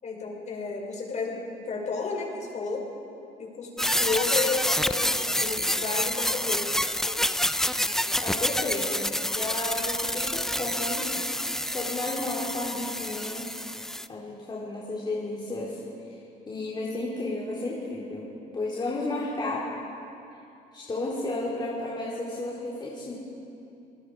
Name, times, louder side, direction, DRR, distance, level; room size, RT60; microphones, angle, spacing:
voice 1, 0.0-2.8 3.4-6.7, left 4 dB, 45° left, 0 dB, 5.8 m, -32 dB
sound 1, 3.8-14.1, left 1 dB, ahead, 0.6 m, -28 dB
voice 2, 8.2-11.1 11.7-13.5 14.1-15.8 16.1-16.2 16.5-18.3 18.5-19.7 20.7-23.1, left 2 dB, 25° left, -6 dB, 4.1 m, -32 dB
28.0 x 19.5 x 5.0 m, 2.7 s
cardioid pair, 110°, 17 cm